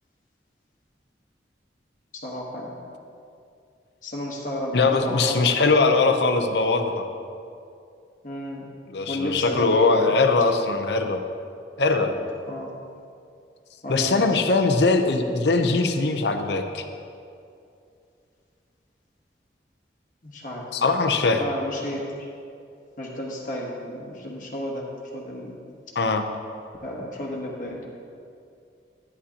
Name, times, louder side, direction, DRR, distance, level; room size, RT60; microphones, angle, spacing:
voice 1, 2.1-2.8 4.0-6.1 8.2-8.6 9.1-10.0 12.0-12.7 13.8-14.5 20.2-20.7 21.4-22.3 23.0-24.9 25.1-25.6 26.8-27.9, left 1 dB, 50° left, -3 dB, 1.2 m, -32 dB
voice 2, 4.7-7.1 8.9-11.2 11.8-12.1 13.9-16.8 20.7-21.4 26.0-26.2, left 3 dB, 75° left, 6 dB, 0.7 m, -21 dB
11.5 x 9.8 x 2.8 m, 2.5 s
head